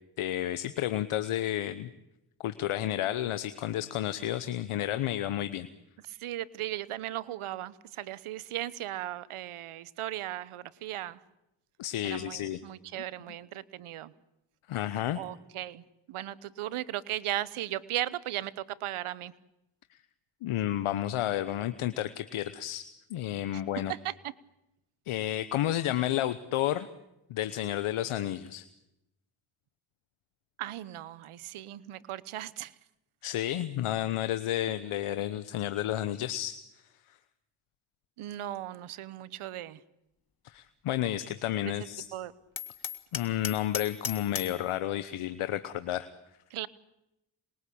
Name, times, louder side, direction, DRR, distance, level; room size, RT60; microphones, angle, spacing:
voice 1, 0.2-1.9 2.4-5.7 11.8-12.6 14.7-15.2 19.9-20.0 20.4-22.8 23.1-23.9 25.1-26.9 27.3-28.6 33.2-36.6 40.4-42.1 43.1-46.1, left 12 dB, 85° left, 12 dB, 1.1 m, -31 dB
voice 2, 6.1-11.2 12.0-14.1 15.1-19.3 23.5-23.6 23.9-24.3 30.6-32.7 38.2-39.8 41.6-41.7 42.1-42.3 46.5-46.7, right 13 dB, 85° right, 19 dB, 1.1 m, -37 dB
Hammer, 42.6-44.6, left 6 dB, 45° left, 2.2 m, -37 dB
26.5 x 21.5 x 8.6 m, 0.88 s
supercardioid pair, 45°, 49 cm